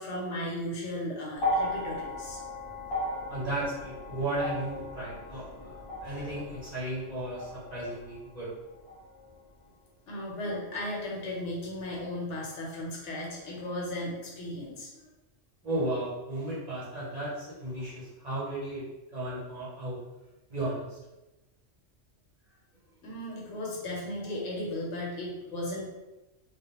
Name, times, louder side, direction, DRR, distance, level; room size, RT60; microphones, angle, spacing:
voice 1, 0.0-2.4 10.1-15.0 23.0-25.8, left 1 dB, 75° left, -3 dB, 1.0 m, -36 dB
sound 1, 1.3-9.7 10.8-10.9, left 1 dB, 40° left, 0.4 m, -37 dB
voice 2, 3.3-8.5 15.6-20.0 20.5-21.0, right 1 dB, 40° right, -8 dB, 0.8 m, -35 dB
2.2 x 2.2 x 2.9 m, 1.0 s
omnidirectional pair, 1.2 m